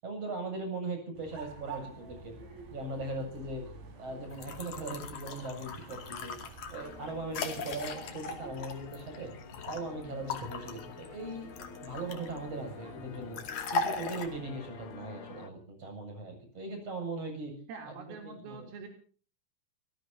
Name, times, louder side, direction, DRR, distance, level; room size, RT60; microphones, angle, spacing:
voice 1, 0.0-2.3 2.7-3.6 4.0-6.4 6.7-9.3 9.7-11.5 11.8-13.4 13.7-17.5 17.9-18.0 18.2-18.7, right 2 dB, 30° right, 5 dB, 8.6 m, -39 dB
sound 1, 1.1-15.0, right 3 dB, 65° right, 6.9 m, -50 dB
sound 2, 4.3-9.8 10.3-12.4 13.3-14.3, left 5 dB, 45° left, 3.1 m, -38 dB
sound 3, 6.8-15.5, left 7 dB, 70° left, 1.9 m, -50 dB
voice 2, 17.7-18.9, right 5 dB, 80° right, 5 dB, 5.9 m, -45 dB
28.5 x 18.5 x 2.8 m, 0.40 s
omnidirectional pair, 5.8 m